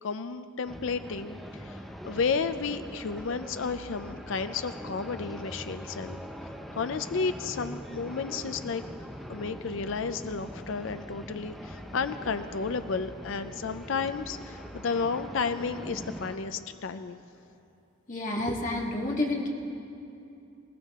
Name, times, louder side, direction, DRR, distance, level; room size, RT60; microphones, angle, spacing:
voice 1, 0.0-6.2 6.7-8.8 9.3-17.2, left 5 dB, 65° left, 10 dB, 0.5 m, -32 dB
sound 1, 0.7-16.4, equal, ahead, 0.7 m, -42 dB
voice 2, 18.1-19.5, left 2 dB, 40° left, -1 dB, 1.8 m, -29 dB
20.5 x 17.0 x 3.6 m, 2.7 s
head